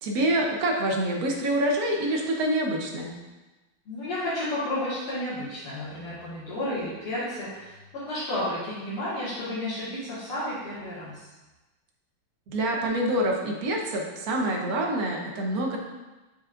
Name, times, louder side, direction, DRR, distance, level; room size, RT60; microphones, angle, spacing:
voice 1, 0.0-3.1 12.5-15.8, right 1 dB, 55° right, 0 dB, 1.1 m, -26 dB
voice 2, 3.9-11.3, left 1 dB, 80° left, -12 dB, 2.4 m, -32 dB
7.5 x 5.2 x 2.5 m, 1.1 s
omnidirectional pair, 2.4 m